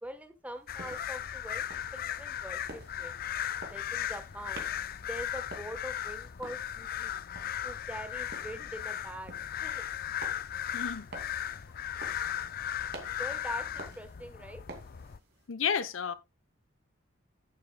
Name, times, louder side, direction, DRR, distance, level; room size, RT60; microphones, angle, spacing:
voice 1, 0.0-3.2 3.7-4.7 5.0-7.2 7.6-9.8 13.2-14.6, right 1 dB, 5° right, 1.2 m, -43 dB
sound 1, 0.6-15.5, right 2 dB, 50° right, 2.4 m, -51 dB
sound 2, 0.7-15.2, left 10 dB, 45° left, 0.4 m, -37 dB
voice 2, 10.7-11.1 15.5-16.1, left 7 dB, 75° left, 0.8 m, -31 dB
11.5 x 8.9 x 2.3 m
head